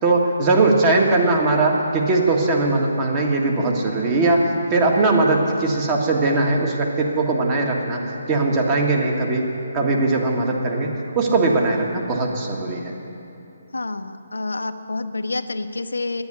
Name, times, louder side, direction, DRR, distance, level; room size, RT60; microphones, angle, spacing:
voice 1, 0.0-9.5 9.7-12.9, right 2 dB, 25° right, 0 dB, 1.6 m, -20 dB
voice 2, 13.7-16.2, left 3 dB, 90° left, 8 dB, 0.7 m, -28 dB
10.5 x 9.6 x 9.8 m, 2.7 s
hypercardioid pair, 155°, 0 cm